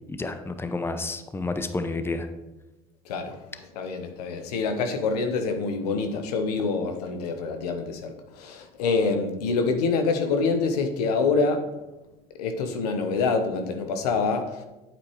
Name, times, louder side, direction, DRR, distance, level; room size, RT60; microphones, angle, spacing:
voice 1, 0.1-2.3, left 3 dB, 10° left, 9 dB, 0.7 m, -30 dB
voice 2, 3.1-11.6 12.4-14.6, left 4 dB, 80° left, 6 dB, 1.0 m, -26 dB
8.4 x 7.3 x 3.1 m, 1.0 s
hypercardioid pair, 75°, 20 cm